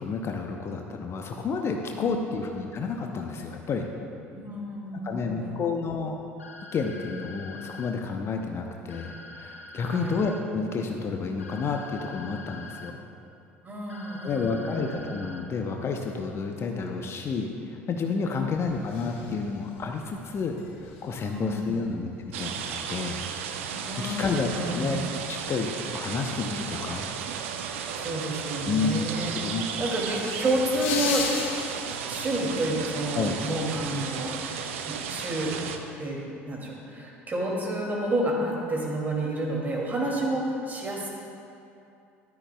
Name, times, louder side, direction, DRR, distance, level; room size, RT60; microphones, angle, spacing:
voice 1, 0.0-3.9 5.0-6.2 6.7-13.0 14.2-20.5 20.8-23.2 23.7-25.0 25.3-27.1 28.7-29.7 33.1-33.4, left 4 dB, 35° left, 3 dB, 0.7 m, -30 dB
voice 2, 2.0-2.3 4.3-5.6 9.8-10.3 13.6-15.0 18.2-18.6 21.2-21.8 23.8-24.9 27.9-29.3 29.8-31.3 31.9-34.4 34.9-35.5 36.0-41.1, right 1 dB, 25° right, -2 dB, 2.5 m, -30 dB
sound 1, 6.4-7.9 8.9-10.4 11.4-12.9 13.9-15.4, left 3 dB, 85° left, 0.6 m, -44 dB
sound 2, 18.7-35.8, left 5 dB, 65° left, 1.1 m, -41 dB
sound 3, 22.3-35.8, right 7 dB, 70° right, 0.6 m, -34 dB
14.0 x 11.5 x 2.3 m, 2.6 s
figure-of-eight pair, 65°, 7 cm